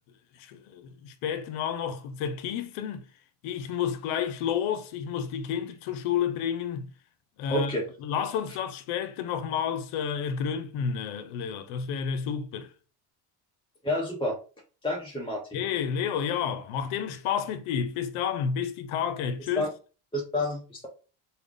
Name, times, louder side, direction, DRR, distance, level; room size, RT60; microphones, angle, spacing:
voice 1, 0.4-3.1 3.4-6.9 7.4-7.7 8.0-12.7 15.5-19.7, left 7 dB, 80° left, 0.7 m, -30 dB
voice 2, 7.5-7.9 13.8-14.4 14.8-15.6 19.6-19.7 20.1-20.9, left 1 dB, 10° left, 0.7 m, -29 dB
3.4 x 2.3 x 3.5 m
supercardioid pair, 85°, 49 cm